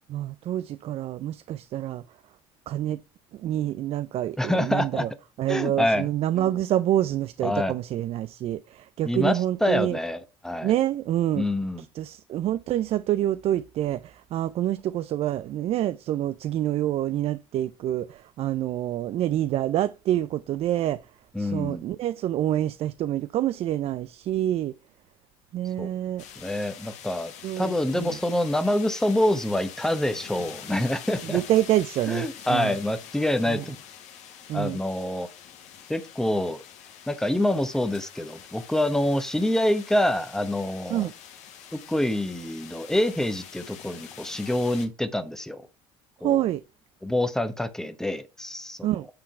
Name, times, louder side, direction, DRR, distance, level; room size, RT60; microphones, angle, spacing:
voice 1, 0.1-2.0 2.7-3.0 3.3-5.1 5.4-10.0 10.6-11.5 11.8-21.0 21.4-24.7 25.5-26.3 27.4-28.2 31.2-32.8 33.5-33.6 34.5-34.8 40.9-41.1 46.2-46.6 48.8-49.1, right 12 dB, 55° right, 0.4 m, -27 dB
voice 2, 4.4-5.0 5.5-6.1 6.4-6.5 7.4-7.7 9.0-10.7 11.3-11.8 21.3-21.8 25.8-25.9 26.4-31.4 32.1-33.8 34.5-35.3 35.9-36.6 37.1-41.1 41.7-45.6 46.2-46.4 47.0-48.9, left 1 dB, 5° left, 1.0 m, -26 dB
sound 1, 26.2-44.9, left 9 dB, 70° left, 1.5 m, -45 dB
8.7 x 3.7 x 4.3 m
supercardioid pair, 85°, 13 cm